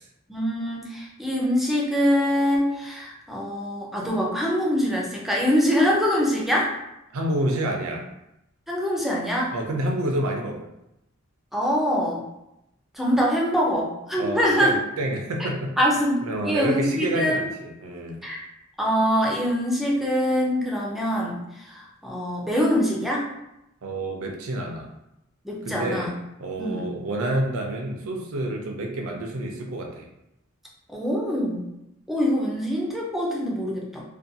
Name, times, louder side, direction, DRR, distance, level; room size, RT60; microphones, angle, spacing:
voice 1, 0.3-6.7 8.7-9.5 11.5-12.2 12.9-14.7 15.4-15.5 15.8-17.4 18.2-18.5 18.8-23.3 25.4-26.2 26.6-26.9 30.9-31.6 32.1-34.0, equal, ahead, -3 dB, 0.4 m, -24 dB
voice 2, 7.1-8.1 9.5-10.7 14.2-15.7 16.2-18.2 23.8-24.9 25.6-26.1 26.4-30.1, right 1 dB, 80° right, 2 dB, 0.5 m, -28 dB
2.6 x 2.2 x 2.6 m, 0.86 s
head